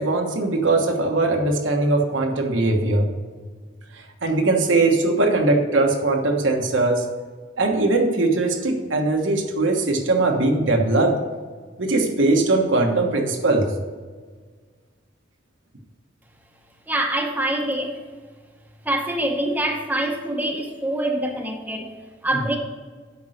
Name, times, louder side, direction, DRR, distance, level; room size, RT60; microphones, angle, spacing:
voice 1, 0.0-3.1 4.2-7.0 7.6-11.2 11.8-13.7, right 2 dB, 80° right, 3 dB, 1.2 m, -20 dB
voice 2, 16.9-18.0 18.8-22.6, right 1 dB, 10° right, 2 dB, 0.8 m, -25 dB
8.4 x 5.4 x 6.4 m, 1.5 s
head